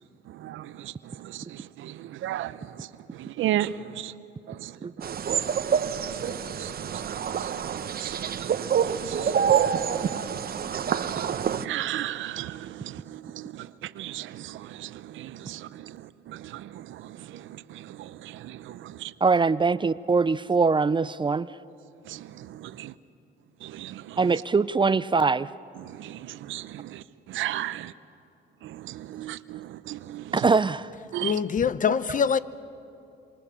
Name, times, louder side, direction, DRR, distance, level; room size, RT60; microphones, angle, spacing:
voice 1, 0.3-4.1 4.5-5.1 5.8-9.5 10.7-19.1 22.1-22.9 23.6-24.2 25.8-27.9 28.6-30.5 31.1-31.4, right 13 dB, 80° right, 0.8 m, -36 dB
sound 1, 5.0-11.7, right 8 dB, 50° right, 1.0 m, -27 dB
voice 2, 19.2-21.5 24.2-25.5 30.3-30.9, right 4 dB, 25° right, 0.5 m, -22 dB
voice 3, 31.2-32.4, left 7 dB, 40° left, 0.8 m, -24 dB
27.0 x 24.5 x 7.1 m
cardioid pair, 90°, 20 cm